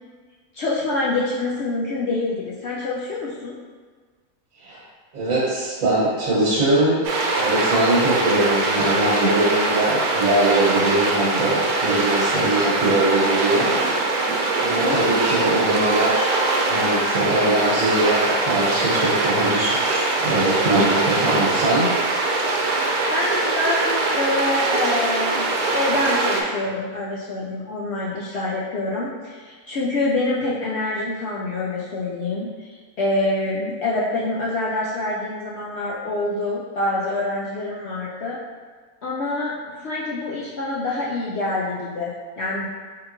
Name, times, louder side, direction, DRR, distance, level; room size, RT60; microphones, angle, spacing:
voice 1, 0.5-3.5 14.8-15.2 23.1-32.7 33.0-38.4 39.0-42.7, left 2 dB, 65° left, -6 dB, 0.6 m, -26 dB
voice 2, 5.1-7.0 7.4-13.7 14.6-21.9, right 1 dB, 65° right, -8 dB, 1.4 m, -22 dB
sound 1, 7.0-26.4, right 3 dB, 85° right, 1.1 m, -22 dB
4.2 x 3.8 x 2.5 m, 1.5 s
omnidirectional pair, 1.6 m